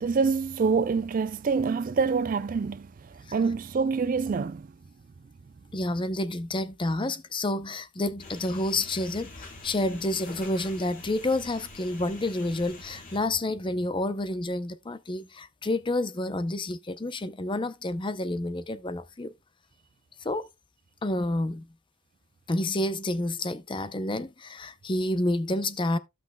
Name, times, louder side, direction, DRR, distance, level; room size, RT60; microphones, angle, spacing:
voice 1, 0.0-4.7, right 5 dB, 40° right, 0.4 m, -26 dB
voice 2, 5.7-19.3 20.2-20.5 21.0-21.6 22.5-26.0, left 1 dB, 25° left, 0.6 m, -29 dB
sound 1, 8.2-13.2, left 2 dB, 40° left, 2.5 m, -45 dB
15.0 x 6.0 x 2.2 m
head